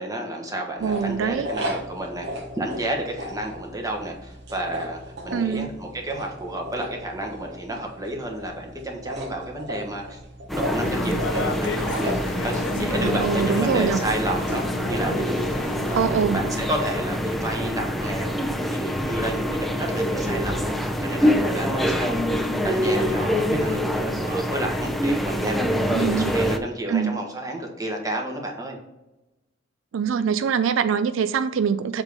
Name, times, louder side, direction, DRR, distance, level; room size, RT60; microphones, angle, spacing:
voice 1, 0.0-2.3 2.5-10.2 10.5-14.6 14.9-18.3 18.7-22.2 22.6-25.6 26.0-28.8, right 1 dB, 20° right, 1 dB, 1.2 m, -31 dB
sound 1, 0.8-15.0, equal, 65° right, 1.1 m, -36 dB
voice 2, 0.8-1.5 5.3-5.7 13.0-14.0 15.9-16.4 25.9-26.3 26.9-27.1 29.9-32.0, right 7 dB, 90° right, 12 dB, 0.4 m, -23 dB
sound 2, 10.5-26.6, equal, ahead, 0.5 m, -25 dB
sound 3, 10.8-16.1, left 3 dB, 70° left, 0.5 m, -33 dB
7.2 x 3.5 x 5.3 m, 0.99 s
head